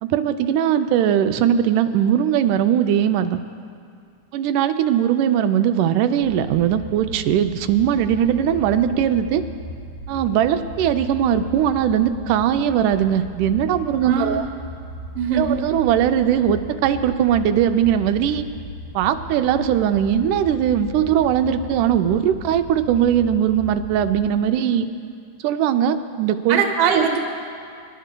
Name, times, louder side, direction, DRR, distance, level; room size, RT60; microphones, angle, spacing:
voice 1, 0.0-3.4 4.3-9.4 10.1-14.5 15.3-18.5 19.0-24.9 25.4-26.6 27.0-27.1, right 9 dB, 90° right, 8 dB, 2.1 m, -20 dB
sound 1, 6.2-24.3, equal, 60° left, 2.0 m, -36 dB
voice 2, 14.0-14.5 15.1-15.6 26.5-27.2, right 6 dB, 65° right, 4 dB, 1.6 m, -21 dB
26.0 x 11.0 x 2.2 m, 2.3 s
omnidirectional pair, 3.5 m